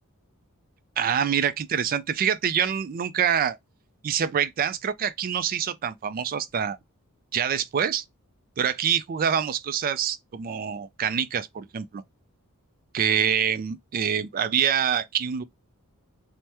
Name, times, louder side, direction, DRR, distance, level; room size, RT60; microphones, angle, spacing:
voice 1, 1.0-3.6 4.0-6.8 7.3-8.0 8.6-12.0 12.9-15.4, right 8 dB, 40° right, 0.3 m, -25 dB
2.8 x 2.1 x 3.3 m
head